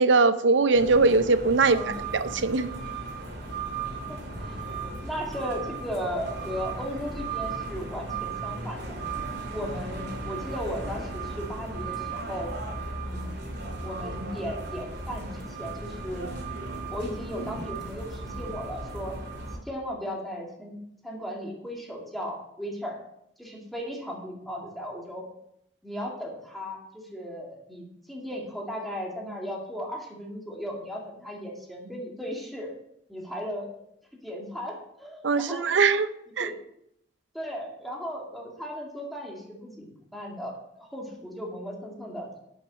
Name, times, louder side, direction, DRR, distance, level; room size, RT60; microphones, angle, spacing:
voice 1, 0.0-1.8 2.1-2.7 35.2-36.1 36.4-36.5, right 4 dB, 80° right, 12 dB, 0.6 m, -21 dB
sound 1, 0.7-19.5, right 3 dB, 65° right, 2.9 m, -36 dB
voice 2, 4.1-4.6 5.0-9.0 9.5-12.5 13.0-13.4 13.8-16.3 16.9-19.2 19.7-23.0 23.4-25.2 25.8-32.7 33.1-33.7 34.2-35.9 36.4-36.6 37.3-42.4, equal, ahead, -2 dB, 2.2 m, -36 dB
11.0 x 6.2 x 5.0 m, 0.76 s
head